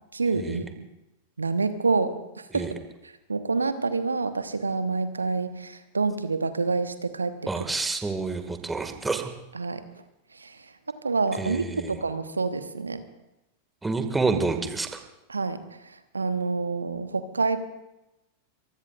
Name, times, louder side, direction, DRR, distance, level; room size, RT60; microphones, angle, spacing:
voice 1, 0.1-0.9 1.4-2.7 3.0-7.4 9.5-9.8 10.3-13.0 15.3-17.6, right 4 dB, 75° right, 11 dB, 1.1 m, -28 dB
voice 2, 7.5-9.3 11.4-12.0 13.8-15.0, right 3 dB, 10° right, 6 dB, 2.0 m, -28 dB
25.0 x 19.0 x 2.5 m, 0.92 s
figure-of-eight pair, 90°, 0 cm